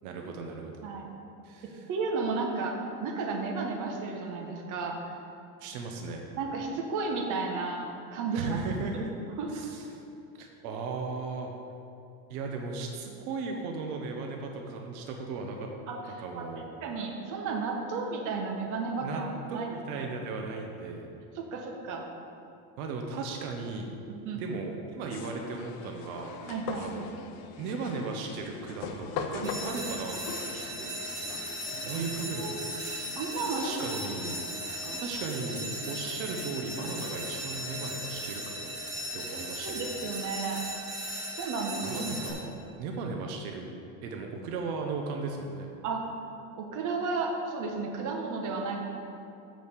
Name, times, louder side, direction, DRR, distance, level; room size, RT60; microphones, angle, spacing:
voice 1, 0.0-0.7 1.4-1.9 5.6-6.2 8.3-9.1 9.5-9.9 10.4-11.5 12.3-15.7 16.2-16.7 19.0-19.2 19.5-21.1 22.8-24.0 24.3-27.1 27.6-30.2 30.5-31.0 31.8-33.2 33.6-34.4 35.0-38.7 39.1-39.9 41.8-43.7 44.0-45.7, right 4 dB, 80° right, 2 dB, 1.1 m, -36 dB
voice 2, 1.6-5.2 6.3-8.6 9.4-9.5 15.9-16.4 16.8-19.7 19.9-20.1 21.3-22.1 24.1-24.5 26.5-26.9 31.9-32.1 32.3-32.6 33.2-34.0 34.8-35.0 39.3-40.6 41.3-42.0 45.8-46.0 46.6-48.8, right 4 dB, 45° right, 1 dB, 1.3 m, -33 dB
sound 1, 25.1-37.7, left 5 dB, 55° left, 0.8 m, -43 dB
sound 2, 29.4-42.3, equal, 10° right, 2.2 m, -37 dB
7.6 x 5.2 x 6.7 m, 2.7 s
cardioid pair, 135°, 42 cm